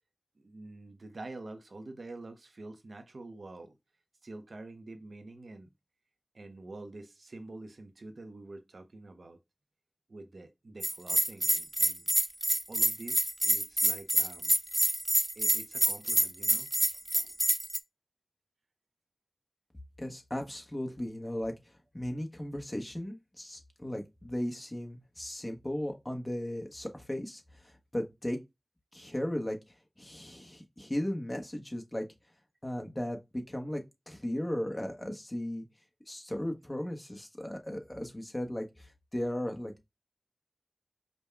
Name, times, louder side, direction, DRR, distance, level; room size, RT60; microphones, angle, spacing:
voice 1, 0.4-3.8 4.2-5.7 6.3-9.4 10.1-12.1 12.7-14.5 15.3-16.7 17.1-17.3, right 2 dB, 85° right, 0.7 m, -47 dB
Bell, 10.8-17.8, right 1 dB, 25° right, 0.3 m, -27 dB
voice 2, 20.0-21.5 21.9-28.4 28.9-29.6 30.0-32.1 32.6-33.8 34.1-35.6 36.1-39.7, left 1 dB, 25° left, 1.0 m, -36 dB
5.1 x 2.2 x 3.4 m
wide cardioid pair, 50°, 0 cm